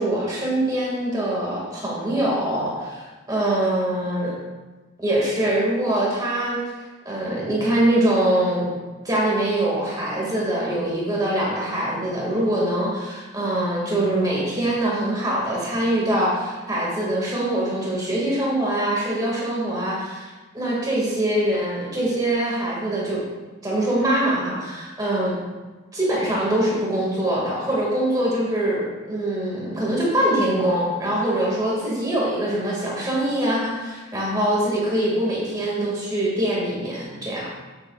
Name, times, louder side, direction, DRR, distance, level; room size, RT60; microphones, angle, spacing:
voice 1, 0.0-4.3 5.0-6.6 7.0-8.7 9.0-23.2 23.6-25.4 25.9-37.5, right 1 dB, 20° right, -5 dB, 2.2 m, -23 dB
8.7 x 8.5 x 2.4 m, 1.3 s
head